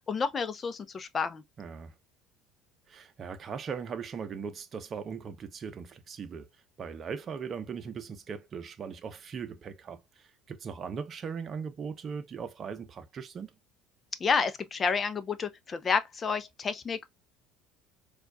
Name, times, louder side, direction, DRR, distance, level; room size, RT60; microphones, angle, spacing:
voice 1, 0.1-1.4 14.2-17.1, left 5 dB, 30° left, 0.6 m, -30 dB
voice 2, 1.6-1.9 2.9-6.5 6.8-13.5, right 6 dB, 40° right, 0.7 m, -39 dB
4.5 x 2.4 x 2.3 m
supercardioid pair, 110°, 0 cm